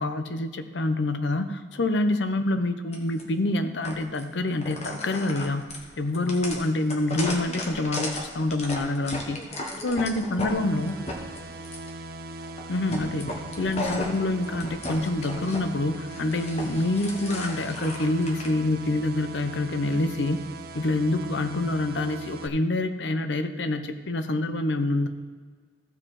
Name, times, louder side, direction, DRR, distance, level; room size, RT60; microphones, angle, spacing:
voice 1, 0.0-5.7 6.0-9.4 9.8-11.0 12.7-20.4 20.7-25.1, left 2 dB, 70° left, 9 dB, 0.7 m, -26 dB
sound 1, 2.9-3.2 3.8-4.2 4.6-10.5 10.9-11.9 12.4-12.6 12.9-15.6 15.9-18.5, left 1 dB, 35° left, 1.3 m, -35 dB
voice 2, 8.8-12.0 12.3-13.9, equal, 20° left, -6 dB, 1.6 m, -48 dB
sound 2, 10.5-22.5, right 2 dB, 50° right, 0.6 m, -40 dB
14.5 x 5.1 x 4.8 m, 1.5 s
head